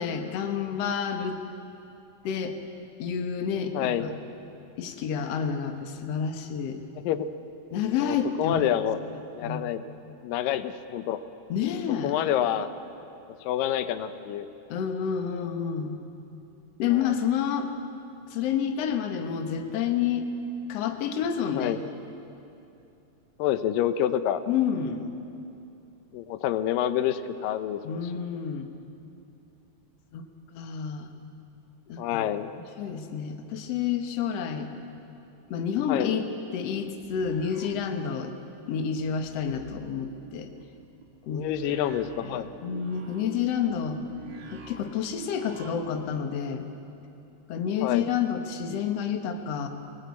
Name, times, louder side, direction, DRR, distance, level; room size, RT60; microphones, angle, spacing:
voice 1, 0.0-1.4 2.2-2.6 3.0-4.1 4.8-6.8 7.7-8.7 9.4-9.7 11.5-12.2 14.7-16.0 16.8-17.7 18.3-20.3 20.7-21.8 24.5-25.1 27.8-28.7 30.1-30.3 30.5-31.1 31.9-32.3 32.8-34.7 35.5-38.3 38.7-40.5 41.3-41.5 42.2-44.0 44.5-46.7 47.5-49.7, left 7 dB, 60° left, 6 dB, 2.1 m, -29 dB
voice 2, 3.7-4.1 7.0-7.3 8.0-9.0 9.4-9.8 10.2-11.2 12.0-12.7 13.4-14.5 17.0-17.1 21.5-21.8 23.4-24.4 26.1-28.2 32.0-32.5 35.9-36.1 41.3-42.5 47.8-48.1, left 11 dB, 90° left, 11 dB, 2.5 m, -27 dB
sound 1, 36.8-38.4 38.7-46.2, right 5 dB, 65° right, 3.6 m, -47 dB
25.5 x 19.0 x 8.4 m, 2.8 s
omnidirectional pair, 3.9 m